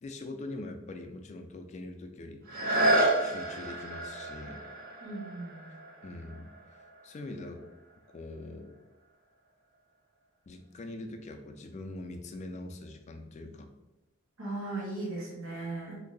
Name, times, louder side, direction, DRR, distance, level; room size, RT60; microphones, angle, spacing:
voice 1, 0.0-2.4 3.2-4.7 6.0-6.5 7.0-7.6 8.1-8.7 10.5-13.7, left 2 dB, 35° left, 5 dB, 0.3 m, -42 dB
sound 1, 2.4-8.1 8.7-8.8, right 1 dB, 45° right, 0.5 m, -31 dB
voice 2, 5.0-5.8 14.4-16.0, right 2 dB, 75° right, -3 dB, 1.1 m, -37 dB
3.0 x 2.6 x 3.8 m, 1.0 s
head